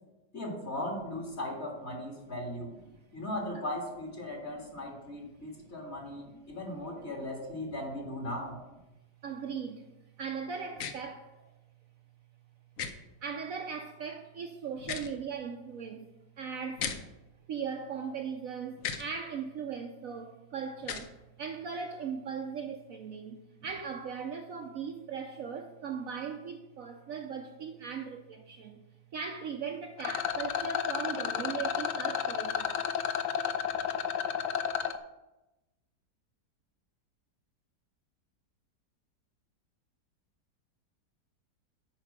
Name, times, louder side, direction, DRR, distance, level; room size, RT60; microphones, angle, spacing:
voice 1, 0.3-2.7 3.1-8.6, left 1 dB, 40° left, 2.2 m, -38 dB
voice 2, 5.0-5.8 6.5-6.6 7.0-7.1 9.2-9.9 10.2-11.3 13.2-16.1 16.4-16.9 17.5-28.8 29.1-32.7, right 6 dB, 60° right, 1.0 m, -39 dB
sound 1, 10.8-10.9 12.8-12.9 14.8-15.1 16.8-17.0 18.8-19.0 20.8-21.1, left 7 dB, 55° left, 1.1 m, -35 dB
Rattle, 30.0-35.0, left 8 dB, 80° left, 1.3 m, -32 dB
8.9 x 4.9 x 7.2 m
omnidirectional pair, 1.9 m